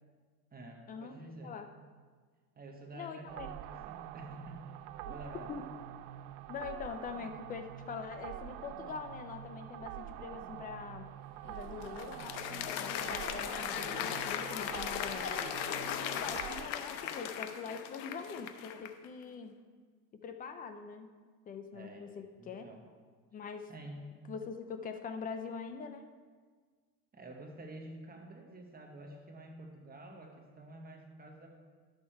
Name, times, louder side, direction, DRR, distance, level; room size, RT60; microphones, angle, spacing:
voice 1, 0.5-1.6 2.6-4.7 5.1-5.5 21.7-22.1 22.4-22.9 23.7-24.0 27.1-31.5, right 1 dB, 20° right, 2 dB, 1.1 m, -49 dB
voice 2, 2.9-3.5 5.1-5.2 5.5-5.6 6.5-11.1 11.5-12.2 12.8-15.3 16.2-19.5 20.2-21.1 21.5-22.7 23.3-23.7 24.3-26.1, left 6 dB, 20° left, 8 dB, 0.3 m, -43 dB
sound 1, 3.3-16.7, right 12 dB, 85° right, 0.6 m, -46 dB
Applause, 11.4-19.1, left 9 dB, 90° left, 0.9 m, -38 dB
11.5 x 6.5 x 4.5 m, 1.6 s
supercardioid pair, 125°, 50 cm